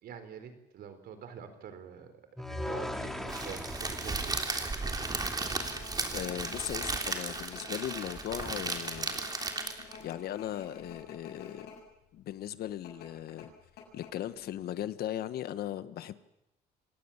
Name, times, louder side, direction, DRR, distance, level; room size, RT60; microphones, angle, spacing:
voice 1, 0.0-2.1 2.5-4.4, right 7 dB, 65° right, 4.2 m, -46 dB
sound 1, 2.4-5.6, left 1 dB, ahead, 2.6 m, -40 dB
Crackle, 3.3-10.0, right 3 dB, 25° right, 3.3 m, -35 dB
sound 2, 4.1-11.8 12.1-12.2 12.8-14.5 14.8-14.9, left 6 dB, 85° left, 7.6 m, -50 dB
voice 2, 6.1-9.2 10.0-11.7 12.1-13.5 13.9-16.1, left 12 dB, 65° left, 1.3 m, -38 dB
26.5 x 18.0 x 7.3 m
cardioid pair, 110°, 17 cm